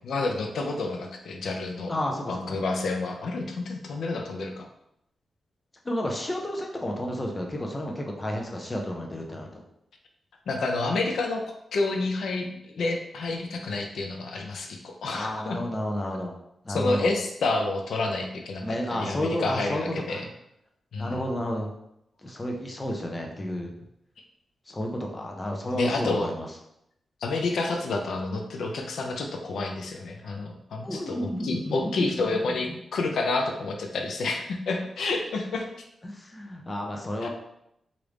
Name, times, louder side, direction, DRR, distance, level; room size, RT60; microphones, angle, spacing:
voice 1, 0.0-1.9 2.3-4.7 10.5-11.4 11.7-15.6 16.7-20.2 20.9-21.2 25.7-26.3 27.2-35.7 37.2-37.3, left 3 dB, 75° left, 3 dB, 0.4 m, -29 dB
voice 2, 1.9-2.6 5.8-9.6 15.1-16.3 16.6-17.1 18.6-19.8 20.1-20.3 21.0-21.7 22.2-23.7 24.7-26.5 30.8-32.2 32.5-32.8 36.0-37.3, left 1 dB, 15° left, 1 dB, 0.5 m, -31 dB
3.1 x 2.5 x 3.3 m, 0.79 s
wide cardioid pair, 170°, 0 cm